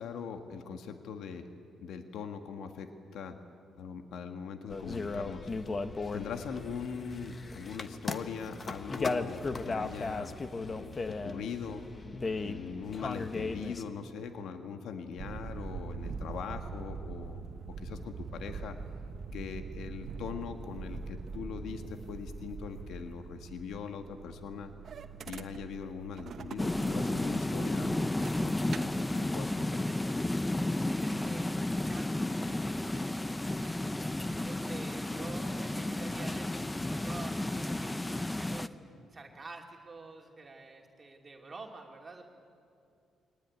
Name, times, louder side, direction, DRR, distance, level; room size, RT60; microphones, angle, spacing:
voice 1, 0.0-1.5 1.8-3.4 3.8-5.5 6.1-10.4 10.7-11.8 12.4-17.4 17.8-18.8 19.3-24.7 25.3-28.9 29.2-30.0, left 6 dB, 75° left, 7 dB, 1.4 m, -41 dB
sound 1, 4.7-13.8, left 3 dB, 35° left, 1.3 m, -36 dB
sound 2, 15.2-29.2, right 5 dB, 55° right, 1.2 m, -43 dB
sound 3, 26.6-38.7, left 1 dB, 10° left, 0.7 m, -32 dB
voice 2, 30.7-42.2, right 3 dB, 30° right, 0 dB, 2.7 m, -49 dB
23.5 x 19.0 x 9.5 m, 2.5 s
cardioid pair, 90°, 0 cm